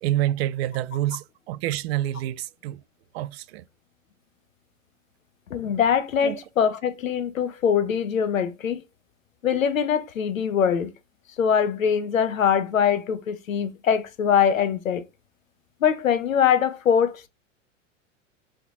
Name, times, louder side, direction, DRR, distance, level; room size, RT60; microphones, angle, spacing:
voice 1, 0.0-2.8 3.1-3.6 6.2-6.4, right 14 dB, 55° right, 0.5 m, -27 dB
voice 2, 5.5-8.8 9.4-10.9 11.4-15.0 15.8-17.3, left 7 dB, 85° left, 0.6 m, -22 dB
3.7 x 3.2 x 2.8 m
hypercardioid pair, 95°, 39 cm